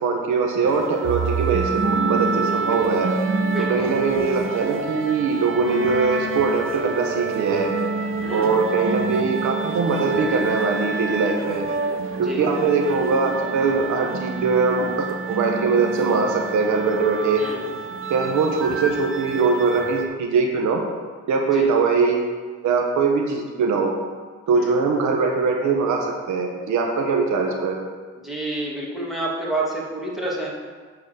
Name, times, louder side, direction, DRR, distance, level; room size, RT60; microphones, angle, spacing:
voice 1, 0.0-3.1 3.7-7.7 8.3-11.6 12.2-17.4 18.1-20.8 21.3-22.2 22.6-23.9 24.5-27.8, right 4 dB, 75° right, 2 dB, 1.2 m, -21 dB
sound 1, 0.7-20.1, right 4 dB, 45° right, 1.0 m, -27 dB
voice 2, 3.4-3.9 8.2-8.6 12.2-12.4 17.4-17.7 21.5-21.7 24.5-24.8 28.2-30.5, right 1 dB, ahead, -5 dB, 2.6 m, -29 dB
9.5 x 4.2 x 6.8 m, 1.5 s
cardioid pair, 90°, 30 cm